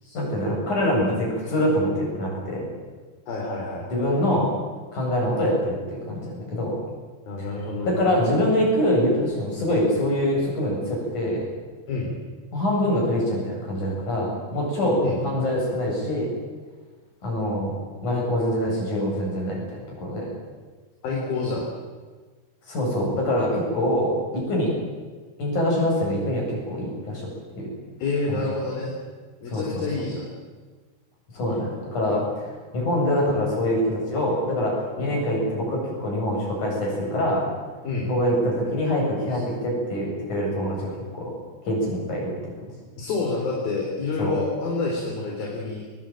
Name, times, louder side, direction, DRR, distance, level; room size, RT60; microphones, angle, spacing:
voice 1, 0.1-2.7 3.9-4.5 4.9-6.8 7.4-7.5 7.8-11.4 12.5-16.3 17.2-19.6 20.0-20.3 22.7-24.7 25.4-27.3 27.6-27.7 28.3-28.4 29.5-29.8 31.3-37.4 38.1-41.3 41.6-42.3 44.2-44.3, left 1 dB, 45° left, -2 dB, 9.5 m, -24 dB
voice 2, 3.3-3.8 7.3-8.0 11.9-12.1 15.0-15.2 21.0-21.7 28.0-28.9 29.4-30.3 31.4-31.8 35.0-35.2 37.8-38.1 39.3-39.4 43.0-45.8, left 3 dB, 60° left, -1 dB, 5.7 m, -28 dB
22.5 x 21.5 x 9.2 m, 1.4 s
omnidirectional pair, 4.8 m